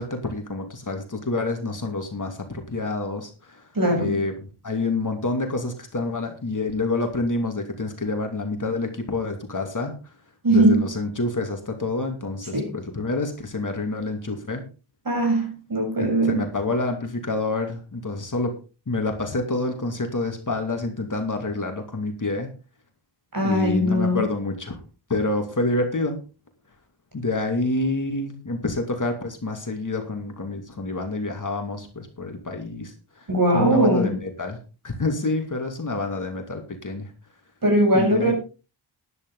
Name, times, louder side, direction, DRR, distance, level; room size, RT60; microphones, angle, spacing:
voice 1, 0.0-3.7 4.0-10.1 10.5-14.6 16.0-18.6 18.9-22.5 23.4-24.8 25.1-26.2 27.1-33.3 33.5-34.6 34.8-37.1 37.9-38.3, left 2 dB, 40° left, 2.6 m, -28 dB
voice 2, 3.7-4.2 10.4-10.8 12.5-12.7 15.1-16.4 23.3-24.3 33.3-34.1 37.6-38.3, right 1 dB, 45° right, 7.4 m, -20 dB
12.5 x 11.0 x 4.0 m
wide cardioid pair, 95°, 49 cm